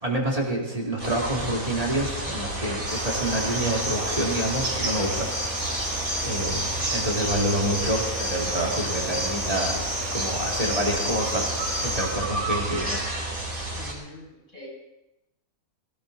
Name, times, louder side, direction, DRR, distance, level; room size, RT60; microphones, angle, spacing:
voice 1, 0.0-5.3 5.6-5.7 6.2-13.1 13.4-13.6, right 1 dB, 25° right, -2 dB, 2.6 m, -28 dB
sound 1, 1.0-13.9, right 1 dB, 85° right, 3.5 m, -32 dB
Cricket, 2.9-12.3, equal, 60° right, 5.7 m, -31 dB
voice 2, 13.7-14.7, left 2 dB, 85° left, -2 dB, 6.3 m, -44 dB
18.0 x 15.5 x 4.0 m, 0.92 s
omnidirectional pair, 1.4 m